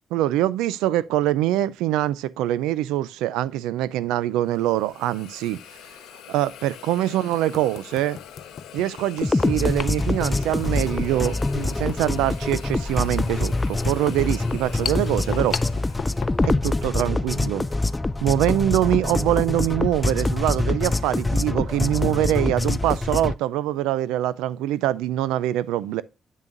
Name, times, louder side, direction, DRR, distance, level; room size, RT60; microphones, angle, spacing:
voice 1, 0.1-5.6 6.3-8.2 8.7-15.6 16.4-17.7 18.2-26.0, right 13 dB, 85° right, 0.4 m, -24 dB
sound 1, 4.3-4.6 6.0-6.1 6.7-6.8 7.3-17.2, left 7 dB, 60° left, 0.6 m, -37 dB
Hiss, 4.4-16.5, left 10 dB, 80° left, 1.1 m, -44 dB
sound 2, 9.2-23.3, left 2 dB, 20° left, 0.4 m, -25 dB
8.3 x 7.0 x 2.5 m
supercardioid pair, 50°, 0 cm